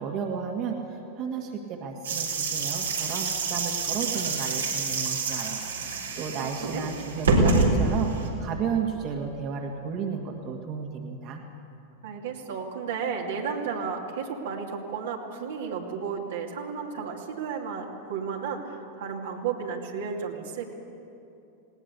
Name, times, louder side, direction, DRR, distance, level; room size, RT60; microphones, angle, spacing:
voice 1, 0.0-11.4, right 6 dB, 45° right, 2 dB, 2.0 m, -33 dB
sound 1, 2.0-8.3, right 3 dB, 85° right, 3.7 m, -27 dB
voice 2, 6.4-6.9 12.0-20.7, right 6 dB, 70° right, 0 dB, 2.6 m, -33 dB
20.0 x 18.0 x 8.3 m, 2.8 s
hypercardioid pair, 95°, 0 cm